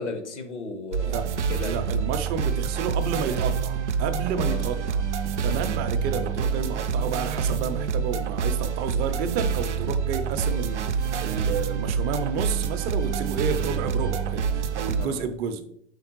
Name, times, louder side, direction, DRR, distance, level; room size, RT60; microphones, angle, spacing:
voice 1, 0.0-1.7 4.3-4.7 15.0-15.2, left 3 dB, 85° left, 7 dB, 0.9 m, -35 dB
sound 1, 0.9-15.1, right 6 dB, 90° right, 0.5 m, -27 dB
voice 2, 1.6-5.0 5.4-15.6, right 6 dB, 30° right, 8 dB, 0.4 m, -31 dB
5.1 x 3.5 x 2.9 m, 0.70 s
hypercardioid pair, 105°, 34 cm